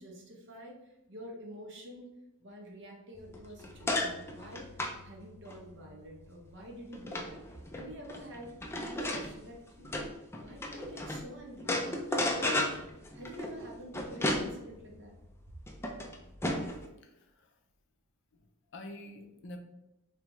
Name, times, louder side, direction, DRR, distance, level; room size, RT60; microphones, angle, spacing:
voice 1, 0.0-2.1 2.4-8.5 8.8-9.9 10.3-12.8 13.1-15.1, equal, 60° right, 0 dB, 0.9 m, -48 dB
sound 1, 3.2-11.3 11.6-16.9, left 1 dB, 10° left, 0.4 m, -35 dB
voice 2, 17.0-17.5 18.7-19.6, left 1 dB, 60° left, 5 dB, 0.6 m, -46 dB
3.4 x 3.2 x 3.1 m, 0.91 s
head